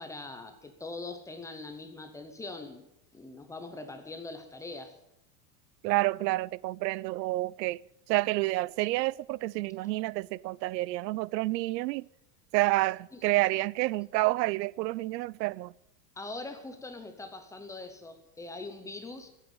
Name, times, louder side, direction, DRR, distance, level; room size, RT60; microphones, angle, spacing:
voice 1, 0.0-2.9 3.1-4.9 13.1-13.2 16.2-19.3, left 3 dB, 5° left, 0.6 m, -42 dB
voice 2, 5.8-7.8 8.1-12.1 12.5-15.7, right 19 dB, 85° right, 0.5 m, -29 dB
15.5 x 8.3 x 8.8 m
supercardioid pair, 165°, 50 cm